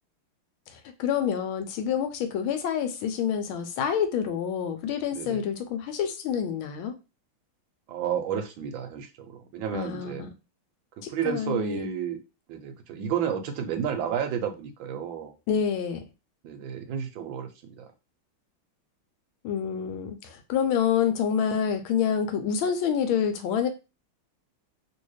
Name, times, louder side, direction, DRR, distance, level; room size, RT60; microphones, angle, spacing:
voice 1, 0.7-6.9 9.7-10.3 11.0-11.9 15.5-16.0 19.4-23.7, left 8 dB, 75° left, 8 dB, 1.4 m, -27 dB
voice 2, 5.1-5.4 7.9-10.3 11.0-12.2 12.5-15.3 16.4-17.9, right 8 dB, 75° right, 6 dB, 1.2 m, -31 dB
3.1 x 2.8 x 3.1 m, 0.28 s
omnidirectional pair, 2.4 m